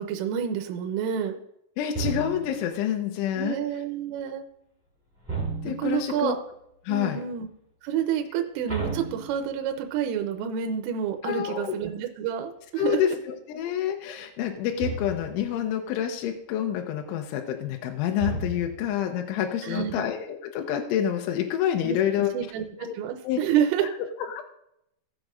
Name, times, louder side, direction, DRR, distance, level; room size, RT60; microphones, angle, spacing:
voice 1, 0.0-1.4 3.4-4.4 5.6-6.4 6.9-7.5 7.8-13.0 19.6-20.0 21.8-22.7 22.9-23.9, right 9 dB, 85° right, 5 dB, 3.2 m, -28 dB
voice 2, 1.8-3.6 5.6-6.4 6.9-7.2 11.2-11.7 12.8-22.3 22.8-22.9 23.2-23.4 24.3-24.4, left 10 dB, 80° left, 3 dB, 3.0 m, -28 dB
sound 1, 1.9-2.7 5.2-6.1 8.7-9.8 14.8-15.5 18.2-19.0, right 4 dB, 5° right, 2.7 m, -33 dB
18.0 x 7.4 x 2.6 m, 0.78 s
omnidirectional pair, 6.0 m